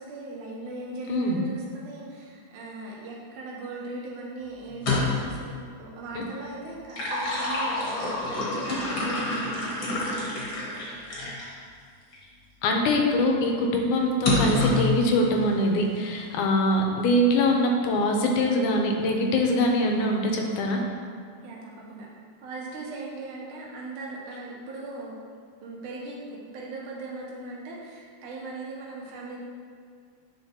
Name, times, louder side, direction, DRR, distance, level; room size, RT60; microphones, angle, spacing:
voice 1, 0.0-11.1 21.4-22.1 22.4-25.2 25.6-29.4, right 2 dB, 80° right, -4 dB, 2.4 m, -39 dB
voice 2, 1.1-1.4 6.2-6.3 12.6-20.8, left 1 dB, 80° left, 1 dB, 2.1 m, -23 dB
sound 1, 4.7-5.4 6.6-11.5 12.1-12.2 14.2-14.9, left 2 dB, 50° left, 1.7 m, -27 dB
10.0 x 4.4 x 2.8 m, 2.2 s
omnidirectional pair, 3.6 m